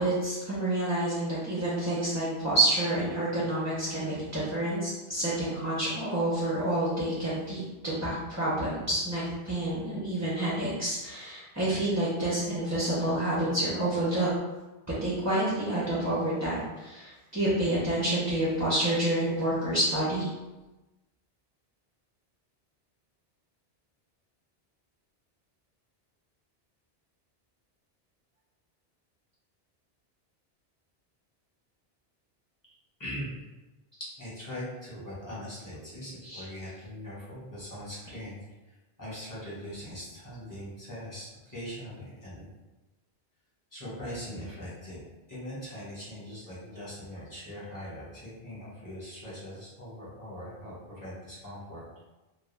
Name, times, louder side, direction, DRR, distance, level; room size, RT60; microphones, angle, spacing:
voice 1, 0.0-14.3 15.0-20.3 36.2-36.4, right 1 dB, 25° right, -8 dB, 0.3 m, -28 dB
voice 2, 33.0-33.3 34.2-38.4 39.0-42.4 43.7-45.0 45.3-50.7 51.0-51.8, equal, 20° left, -10 dB, 0.9 m, -41 dB
2.2 x 2.2 x 3.1 m, 1.1 s
omnidirectional pair, 1.1 m